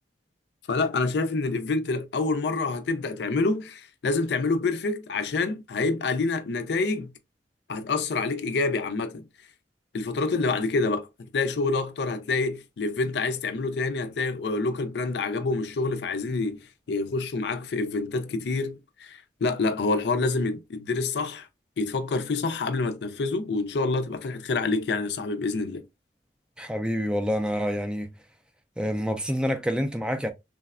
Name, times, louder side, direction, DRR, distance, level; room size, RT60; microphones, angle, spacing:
voice 1, 0.7-7.1 7.7-9.2 9.9-21.5 21.8-25.8, left 3 dB, 70° left, 0.4 m, -27 dB
voice 2, 26.6-28.1 28.8-30.3, equal, 5° right, 0.3 m, -27 dB
3.3 x 2.1 x 2.3 m
head